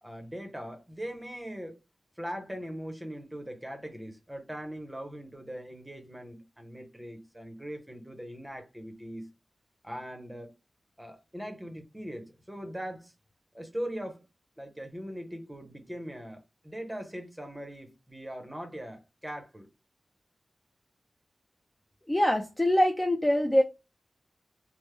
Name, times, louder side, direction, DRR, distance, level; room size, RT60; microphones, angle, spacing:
voice 1, 0.0-1.8 2.2-9.3 9.8-10.5 11.0-13.1 13.5-14.2 14.6-19.7, equal, 10° right, 0.8 m, -40 dB
voice 2, 22.1-23.6, left 1 dB, 15° left, 0.4 m, -24 dB
3.1 x 2.0 x 3.2 m
wide cardioid pair, 80°, 0 cm